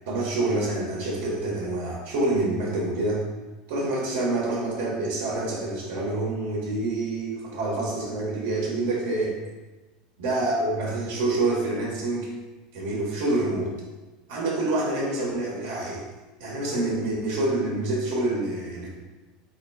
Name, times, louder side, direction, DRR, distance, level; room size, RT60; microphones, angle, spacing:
voice 1, 0.0-3.2 3.7-9.4 10.2-12.3 12.7-13.7 14.3-16.0 16.4-18.9, right 2 dB, 75° right, -4 dB, 1.5 m, -27 dB
4.3 x 4.2 x 2.4 m, 1.2 s
supercardioid pair, 100°, 0 cm